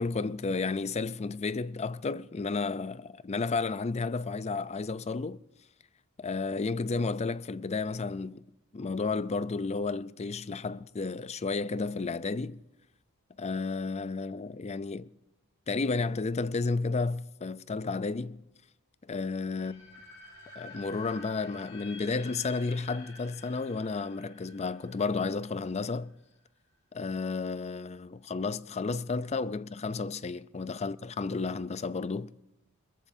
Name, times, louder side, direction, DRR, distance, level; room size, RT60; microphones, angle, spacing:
voice 1, 0.0-5.4 6.2-8.4 8.7-12.6 13.4-15.1 15.7-18.4 19.0-19.9 20.6-26.1 26.9-32.3, left 4 dB, 30° left, 0.5 m, -32 dB
sound 1, 19.4-26.3, left 1 dB, 70° left, 5.1 m, -50 dB
21.5 x 21.5 x 2.7 m
head